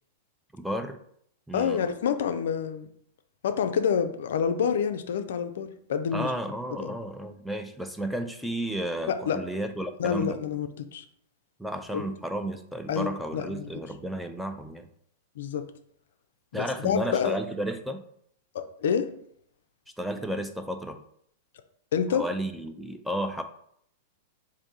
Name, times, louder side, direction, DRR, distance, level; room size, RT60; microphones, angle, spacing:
voice 1, 0.5-1.0 1.5-1.8 6.1-10.4 11.6-14.9 16.5-18.0 20.0-21.0 22.1-23.4, right 1 dB, ahead, 6 dB, 0.4 m, -32 dB
voice 2, 1.5-2.9 3.4-6.3 6.8-6.9 9.1-9.4 10.0-11.0 11.9-12.0 12.9-13.8 15.4-15.7 16.5-17.4 18.5-19.1 21.9-22.2, left 7 dB, 65° left, 8 dB, 0.4 m, -28 dB
3.5 x 2.7 x 3.8 m, 0.67 s
hypercardioid pair, 100°, 0 cm